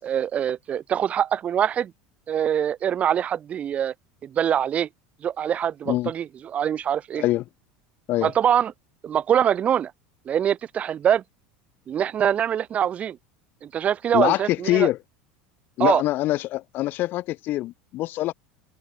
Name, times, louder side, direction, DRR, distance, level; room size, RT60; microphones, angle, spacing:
voice 1, 0.0-1.9 2.3-3.9 4.2-4.9 5.2-7.2 8.2-8.7 9.0-9.9 10.3-11.2 11.9-13.2 13.6-14.9 15.8-16.0, right 9 dB, 30° right, 6.2 m, -23 dB
voice 2, 14.1-15.0 15.8-18.3, left 16 dB, 45° left, 7.2 m, -24 dB
supercardioid pair, 140°, 5 cm